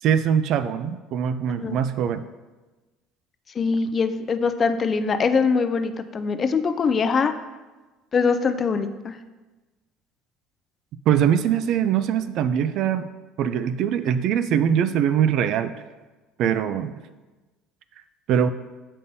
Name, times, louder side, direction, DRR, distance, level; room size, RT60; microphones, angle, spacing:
voice 1, 0.0-2.2 11.1-13.1 13.4-15.8 16.4-16.9 18.3-18.5, right 8 dB, 60° right, 12 dB, 0.3 m, -22 dB
voice 2, 3.6-7.3 8.1-9.2, left 5 dB, 30° left, 9 dB, 0.4 m, -23 dB
6.7 x 5.3 x 2.7 m, 1.2 s
cardioid pair, 125°, 0 cm